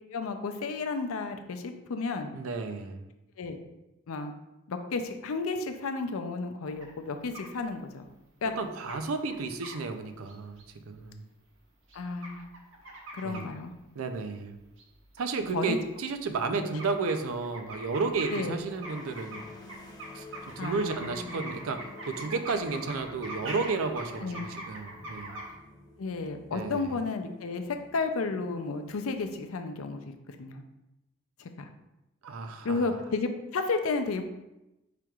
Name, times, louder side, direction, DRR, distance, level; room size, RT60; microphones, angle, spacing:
voice 1, 0.1-2.3 3.4-3.6 4.1-4.3 4.7-8.1 8.4-8.5 11.9-12.5 13.1-13.7 15.5-15.8 18.3-18.6 20.6-21.4 24.2-24.5 26.0-30.6 31.4-31.7 32.6-34.3, left 3 dB, 90° left, 6 dB, 0.5 m, -32 dB
voice 2, 2.3-3.0 8.6-11.2 13.2-13.5 14.0-14.6 15.2-19.4 20.1-20.3 20.6-25.4 26.5-26.9 32.2-32.9, right 4 dB, 90° right, 8 dB, 0.5 m, -32 dB
sound 1, 6.8-6.9 7.3-7.5 8.5-8.6 8.9-9.0 9.3-9.8 10.3-10.6 11.9-13.5 14.8-14.9 15.4-15.5 15.8-15.9 16.2-16.5 16.8-25.5, right 1 dB, 65° right, 0.9 m, -42 dB
sound 2, 18.3-29.8, left 3 dB, 20° left, 0.5 m, -50 dB
5.0 x 4.5 x 2.4 m, 0.95 s
head